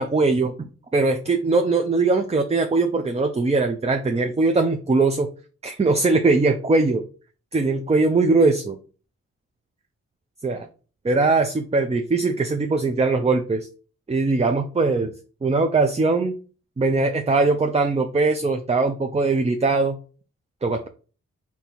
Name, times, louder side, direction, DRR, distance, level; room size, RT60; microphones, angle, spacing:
voice 1, 0.0-5.3 5.6-7.0 7.5-8.8 10.4-10.7 11.0-13.7 14.1-15.1 15.4-16.3 16.8-20.0 20.6-20.9, right 3 dB, 20° right, 6 dB, 0.6 m, -21 dB
3.9 x 2.9 x 4.5 m, 0.37 s
cardioid pair, 60°, 30 cm